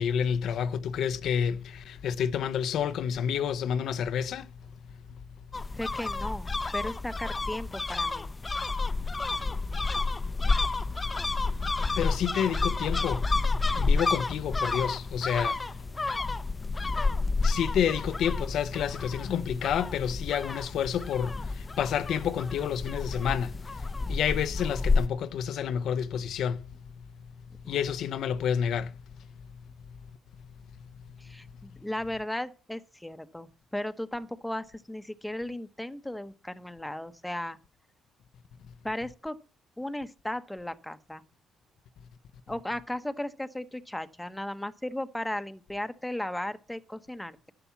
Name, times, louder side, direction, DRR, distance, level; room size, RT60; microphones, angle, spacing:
voice 1, 0.0-4.5 12.0-13.3 13.7-15.8 17.4-26.7 27.7-29.0, left 8 dB, 75° left, 0.7 m, -29 dB
sound 1, 5.5-25.1, left 3 dB, 25° left, 0.7 m, -30 dB
voice 2, 5.7-8.3 27.6-27.8 31.2-37.6 38.8-39.4 39.8-41.2 42.5-47.5, left 1 dB, 5° left, 1.0 m, -36 dB
11.5 x 6.9 x 7.2 m
cardioid pair, 90°, 0 cm